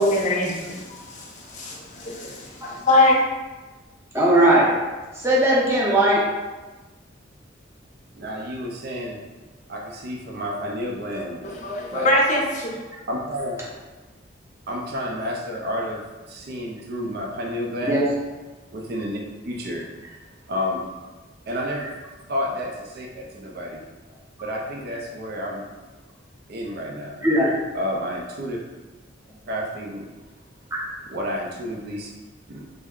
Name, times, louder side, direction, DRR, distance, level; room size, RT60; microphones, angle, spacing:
voice 1, 0.0-2.4 2.9-3.2 11.4-12.7, left 1 dB, 40° left, -3 dB, 0.6 m, -22 dB
voice 2, 4.1-4.7 5.1-6.2 17.8-18.1 27.2-27.5, right 1 dB, 15° right, -6 dB, 0.7 m, -18 dB
voice 3, 8.2-9.2 9.7-11.4 11.9-12.1 13.1-13.6 14.7-16.0 16.3-18.1 18.7-19.9 20.5-20.9 21.5-21.9 22.3-23.8 24.4-25.6 26.5-27.2 27.7-28.6 29.5-30.1 31.1-32.1 32.5-32.7, equal, 55° right, -1 dB, 0.4 m, -30 dB
3.2 x 2.1 x 3.6 m, 1.2 s
head